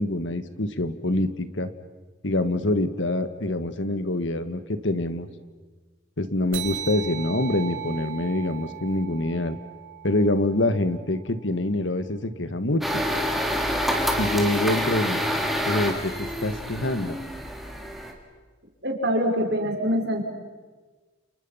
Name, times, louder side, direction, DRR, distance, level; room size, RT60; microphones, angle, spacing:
voice 1, 0.0-1.7 2.2-5.3 6.2-9.6 10.0-13.0 14.2-15.2 15.7-17.2, left 1 dB, 70° left, 11 dB, 1.6 m, -25 dB
sound 1, 6.5-11.4, right 11 dB, 90° right, 4.1 m, -38 dB
sound 2, 12.8-18.1, equal, ahead, 2.7 m, -27 dB
voice 2, 18.8-20.2, equal, 60° right, 2 dB, 4.8 m, -24 dB
29.0 x 29.0 x 5.7 m, 1.3 s
head